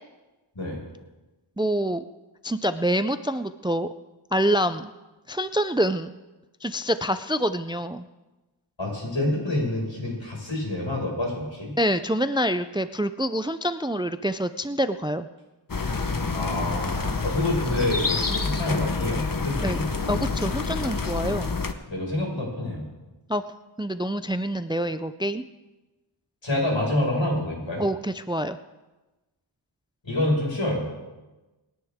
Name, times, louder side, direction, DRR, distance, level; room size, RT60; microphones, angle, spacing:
voice 1, 1.6-2.0 2.4-3.9 4.3-4.9 5.3-6.1 6.6-8.1 11.8-15.3 19.6-19.8 20.1-21.6 23.3-23.4 23.8-25.4 27.8-28.6, equal, 10° right, 11 dB, 0.4 m, -26 dB
voice 2, 8.8-11.8 16.3-20.0 21.9-22.9 26.4-27.8 30.0-30.9, left 1 dB, 65° left, -3 dB, 5.7 m, -27 dB
sound 1, 15.7-21.7, left 4 dB, 45° left, 1.0 m, -27 dB
26.5 x 10.5 x 3.6 m, 1.1 s
wide cardioid pair, 50°, 48 cm